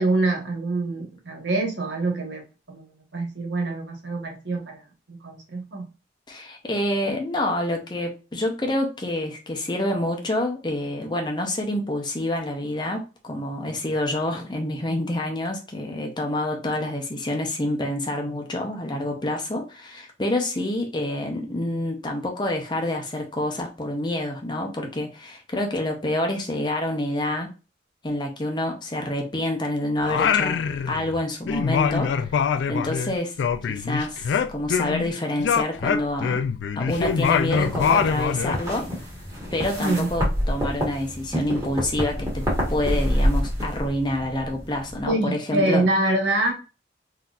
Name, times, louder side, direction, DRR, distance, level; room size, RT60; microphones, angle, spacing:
voice 1, 0.0-2.8 3.1-4.8 5.1-5.8 39.8-40.1 45.1-46.5, right 2 dB, 85° right, 1 dB, 1.3 m, -25 dB
voice 2, 6.3-27.5 28.0-30.6 30.9-33.4 33.7-36.4 36.8-38.9 39.5-45.8, left 1 dB, 25° left, 2 dB, 0.7 m, -27 dB
Singing, 30.0-31.2 31.5-35.1 35.4-38.6, left 6 dB, 85° left, 0.3 m, -24 dB
sound 1, 36.9-45.1, equal, 15° right, 1.4 m, -28 dB
3.8 x 2.8 x 2.4 m, 0.32 s
head